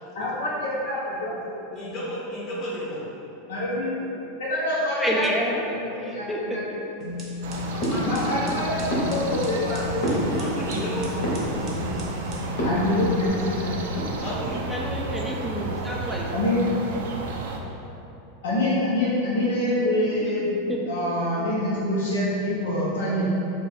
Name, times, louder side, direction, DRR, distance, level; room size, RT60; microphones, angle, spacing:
voice 1, 0.2-1.5 3.5-4.0 4.4-5.3 5.7-6.6 8.0-10.3 10.6-11.0 11.5-11.9 12.6-13.8 16.3-16.6 18.4-20.5 20.9-23.3, left 1 dB, 85° left, -8 dB, 0.6 m, -26 dB
voice 2, 1.7-3.0 7.7-8.5 10.3-11.1 14.2-14.7, equal, 40° left, -6 dB, 0.7 m, -33 dB
voice 3, 5.0-6.6 14.7-16.3 20.2-20.3 20.7-20.8, equal, 5° right, -1 dB, 0.4 m, -29 dB
sound 1, 7.0-13.3, left 4 dB, 40° right, 0.7 m, -34 dB
sound 2, 7.4-17.6, right 3 dB, 80° right, 0.3 m, -32 dB
sound 3, 7.8-8.5 8.9-10.8 11.1-12.0 12.6-13.2 13.4-13.5 13.8-14.5, equal, 65° left, 0.9 m, -29 dB
2.6 x 2.2 x 4.0 m, 3.0 s
hypercardioid pair, 115°, 0 cm